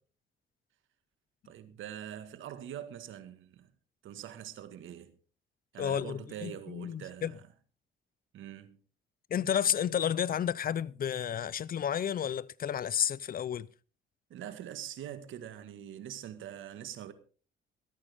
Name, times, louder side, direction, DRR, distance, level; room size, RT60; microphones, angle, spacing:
voice 1, 1.4-3.7 4.0-5.1 5.7-7.5 8.3-8.8 14.3-17.1, right 10 dB, 80° right, 1.8 m, -44 dB
voice 2, 5.8-7.3 9.3-13.7, left 9 dB, 45° left, 0.7 m, -31 dB
16.5 x 14.0 x 3.6 m
cardioid pair, 90°, 20 cm